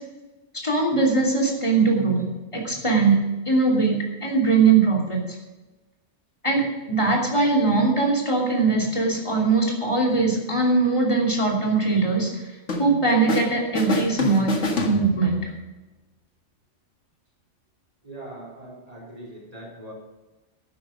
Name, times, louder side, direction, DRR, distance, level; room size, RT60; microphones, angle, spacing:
voice 1, 0.6-2.2 2.5-3.2 3.5-5.2 6.4-12.3 12.8-14.5 14.8-15.4, right 4 dB, 25° left, 0 dB, 3.1 m, -21 dB
sound 1, 12.7-13.5 13.7-15.5, left 3 dB, 85° left, 2.1 m, -27 dB
voice 2, 18.0-19.9, right 1 dB, 30° right, -2 dB, 3.9 m, -41 dB
12.0 x 9.8 x 5.1 m, 1.1 s
omnidirectional pair, 1.2 m